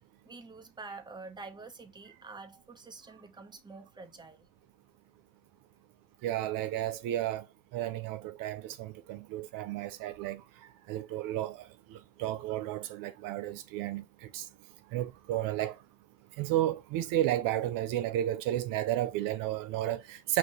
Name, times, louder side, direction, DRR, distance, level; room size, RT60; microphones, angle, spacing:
voice 1, 0.2-4.5, right 3 dB, 15° right, 0.8 m, -47 dB
voice 2, 6.2-7.4 7.7-10.4 10.9-14.0 14.3-14.4 14.9-15.8 16.4-20.4, right 13 dB, 75° right, 0.5 m, -32 dB
5.1 x 2.9 x 2.9 m
supercardioid pair, 95°, 34 cm